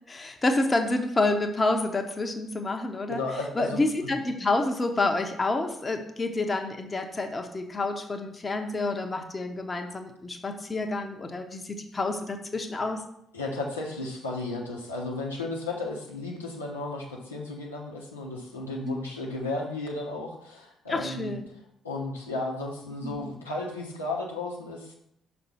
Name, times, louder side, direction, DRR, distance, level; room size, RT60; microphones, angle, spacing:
voice 1, 0.1-3.2 3.5-13.0 18.8-19.0 20.9-21.5 23.0-23.2, left 2 dB, 25° left, 4 dB, 1.0 m, -28 dB
voice 2, 3.1-4.1 13.3-21.3 21.8-24.9, left 2 dB, 90° left, -3 dB, 1.0 m, -34 dB
5.8 x 4.4 x 5.6 m, 0.75 s
figure-of-eight pair, 45°, 0 cm